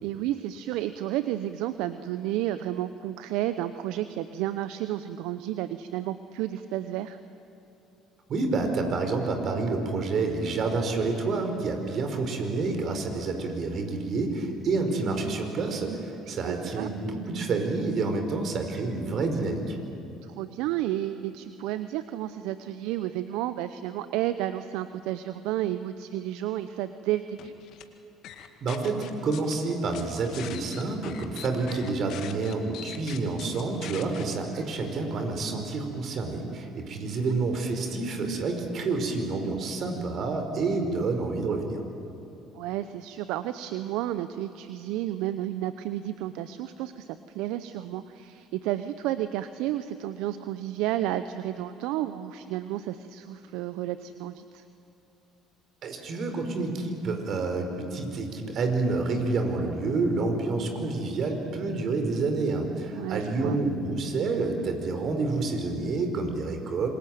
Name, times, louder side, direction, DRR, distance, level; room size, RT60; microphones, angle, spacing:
voice 1, 0.0-7.2 16.4-16.9 20.2-27.5 42.5-54.6 63.0-63.6, right 13 dB, 70° right, 12 dB, 0.8 m, -31 dB
voice 2, 8.3-19.8 28.6-41.8 55.8-66.9, right 3 dB, 55° right, 5 dB, 5.1 m, -28 dB
sound 1, 27.4-27.8 28.2-29.5 29.9-34.2, left 10 dB, 65° left, 2.1 m, -42 dB
27.0 x 22.5 x 9.3 m, 3.0 s
hypercardioid pair, 65°, 0 cm